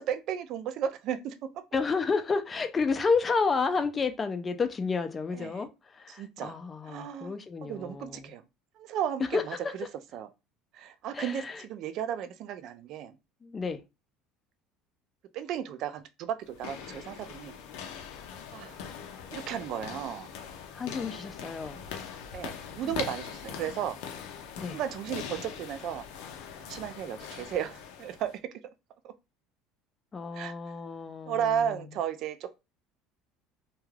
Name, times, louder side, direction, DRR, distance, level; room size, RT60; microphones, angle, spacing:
voice 1, 0.0-1.3 5.3-5.6 6.1-6.6 6.8-7.3 7.6-8.4 8.8-9.5 10.1-10.3 10.7-13.1 15.3-17.6 18.5-18.8 19.3-20.3 22.3-24.0 24.7-26.0 26.6-28.3 29.0-29.1 30.3-30.5 31.3-32.5, right 9 dB, 50° right, 0.4 m, -34 dB
voice 2, 1.7-8.3 9.3-9.4 11.1-11.6 13.4-13.8 20.7-21.8 22.8-22.9 24.6-24.8 30.1-31.7, left 4 dB, 20° left, 0.4 m, -31 dB
sound 1, 16.4-28.4, left 7 dB, 80° left, 0.5 m, -42 dB
2.3 x 2.2 x 3.2 m
cardioid pair, 145°, 0 cm